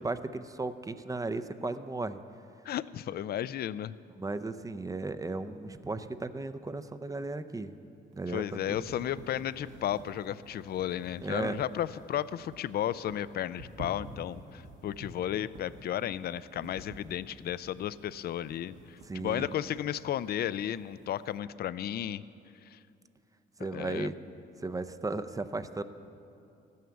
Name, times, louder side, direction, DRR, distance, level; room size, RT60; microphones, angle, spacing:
voice 1, 0.0-2.2 4.2-7.7 8.1-8.4 8.7-8.8 11.2-11.6 19.1-19.5 23.6-24.1 24.6-25.8, right 3 dB, 15° right, 11 dB, 0.6 m, -35 dB
voice 2, 2.7-3.9 8.3-22.2 22.7-22.8 23.7-24.1, left 11 dB, 55° left, 17 dB, 0.4 m, -34 dB
sound 1, 8.1-21.4, right 1 dB, 75° right, 1.7 m, -50 dB
14.5 x 9.4 x 7.0 m, 2.7 s
cardioid pair, 90°, 20 cm